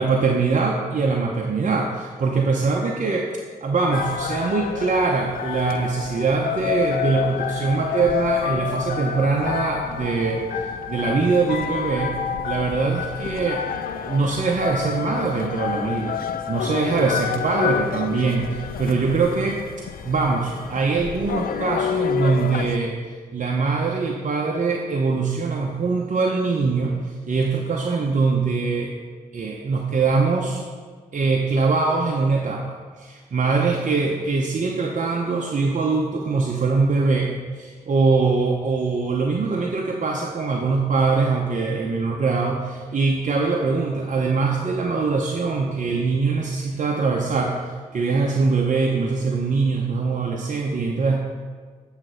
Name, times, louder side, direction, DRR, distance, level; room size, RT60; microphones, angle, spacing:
voice 1, 0.0-3.3 3.6-12.1 12.4-13.6 14.0-16.2 16.5-19.6 20.0-23.0 23.3-28.9 29.3-30.6 31.1-47.6 47.9-51.2, right 4 dB, 50° right, 0 dB, 0.8 m, -22 dB
sound 1, 3.9-22.8, left 8 dB, 65° left, 0.4 m, -29 dB
7.5 x 3.3 x 6.3 m, 1.5 s
supercardioid pair, 40°, 16 cm